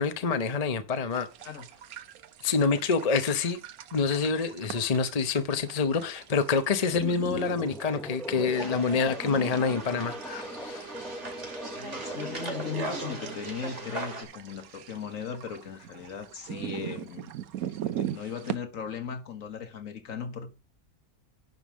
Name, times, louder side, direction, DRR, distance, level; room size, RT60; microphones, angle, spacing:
voice 1, 0.0-1.3 2.4-3.6 3.9-10.8, left 5 dB, 30° left, 0.8 m, -27 dB
sound 1, 1.1-18.6, right 11 dB, 75° right, 1.2 m, -42 dB
sound 2, 6.9-13.3, equal, 5° left, 0.3 m, -40 dB
sound 3, 8.4-14.2, right 3 dB, 50° right, 3.0 m, -39 dB
voice 2, 11.8-20.5, left 6 dB, 60° left, 1.7 m, -38 dB
10.5 x 5.4 x 6.2 m
omnidirectional pair, 1.6 m